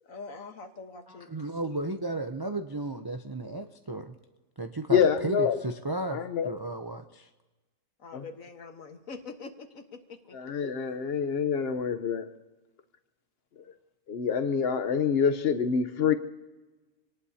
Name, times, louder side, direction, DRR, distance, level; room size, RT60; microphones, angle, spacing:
voice 1, 0.0-1.3 1.6-1.8 8.0-10.4, left 4 dB, 75° left, 6 dB, 1.7 m, -44 dB
voice 2, 1.1-4.1 4.6-7.3, right 2 dB, 40° right, 6 dB, 0.3 m, -34 dB
voice 3, 4.9-5.6 6.1-6.5 8.1-8.2 10.3-12.3 13.6-13.7 14.1-16.1, left 7 dB, 50° left, 8 dB, 1.0 m, -26 dB
26.5 x 18.5 x 2.8 m, 1.2 s
omnidirectional pair, 1.4 m